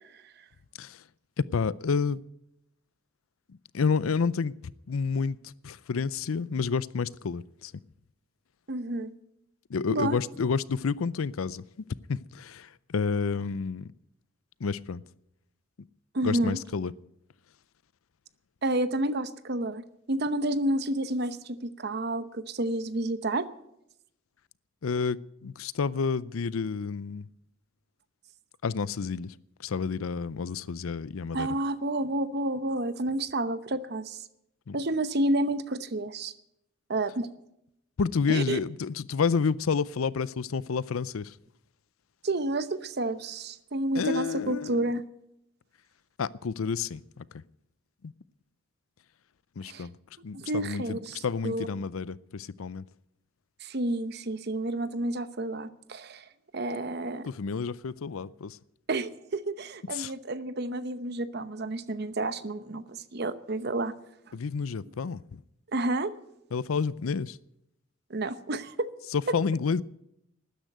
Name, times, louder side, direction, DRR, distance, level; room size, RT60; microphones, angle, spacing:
voice 1, 1.4-2.2 3.7-7.7 9.7-11.6 12.1-13.9 14.6-15.0 16.2-16.9 24.8-27.3 28.6-29.3 29.6-31.5 34.7-34.8 38.0-41.3 43.9-44.9 46.2-47.3 48.0-48.1 49.6-49.9 50.2-52.8 57.3-58.6 59.9-60.1 64.3-65.4 66.5-67.4 69.1-69.8, left 5 dB, 90° left, 19 dB, 0.5 m, -30 dB
voice 2, 8.7-9.1 9.9-10.2 16.1-16.6 18.6-23.5 31.3-34.2 34.7-36.3 36.9-37.3 38.3-38.6 42.2-45.0 49.6-49.9 50.3-51.7 53.6-56.2 56.5-57.3 58.9-63.9 65.7-66.1 68.1-68.9, right 2 dB, 50° right, 13 dB, 0.9 m, -30 dB
13.0 x 10.0 x 9.2 m, 0.81 s
head